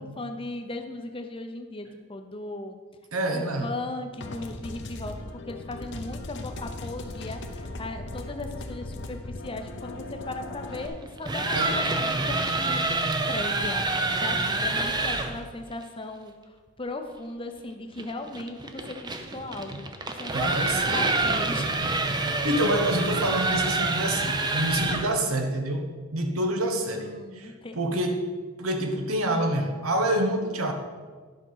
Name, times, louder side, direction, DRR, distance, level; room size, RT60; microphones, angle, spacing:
voice 1, 0.0-2.8 3.3-5.2 5.5-12.8 13.3-19.9 20.2-20.5 20.8-21.7 26.9-28.0, left 2 dB, 25° left, 6 dB, 0.7 m, -37 dB
voice 2, 3.1-3.7 11.5-11.8 19.7-19.8 20.3-21.0 21.3-21.4 22.2-28.2 28.6-30.7, right 1 dB, 85° right, 5 dB, 1.2 m, -27 dB
sound 1, 4.2-10.9, left 2 dB, 55° left, 0.9 m, -38 dB
sound 2, 11.1-15.4 18.0-25.2, right 2 dB, 20° right, 0.6 m, -27 dB
11.0 x 6.0 x 5.6 m, 1.5 s
head